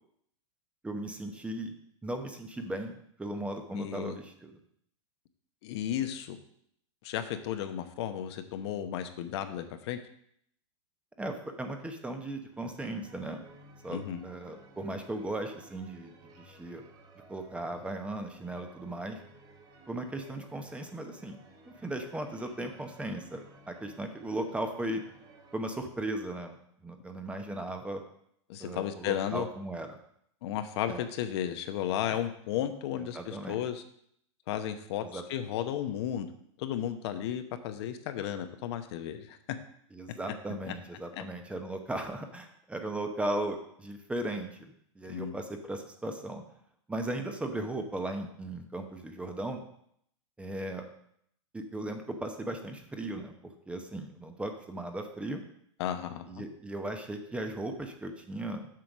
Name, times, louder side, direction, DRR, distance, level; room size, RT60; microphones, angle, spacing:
voice 1, 0.8-1.7 2.0-4.5 11.2-13.4 13.8-16.8 17.3-19.2 19.9-21.4 21.7-25.0 25.5-26.6 26.8-28.0 28.6-30.0 30.9-31.0 32.1-32.2 33.1-33.6 35.0-35.2 39.9-46.4 46.9-49.6 50.4-50.9 51.5-53.3 53.7-55.4 56.3-58.7, right 1 dB, 5° right, 5 dB, 0.8 m, -37 dB
voice 2, 3.7-4.2 5.6-6.4 7.0-10.0 13.9-14.2 28.5-29.5 30.4-33.8 34.5-36.3 36.6-39.4 40.7-40.8 45.1-45.3 55.8-56.4, left 10 dB, 60° left, 8 dB, 0.9 m, -34 dB
sound 1, 12.5-25.6, right 2 dB, 25° right, 1.4 m, -56 dB
7.6 x 5.1 x 6.1 m, 0.69 s
hypercardioid pair, 130°, 16 cm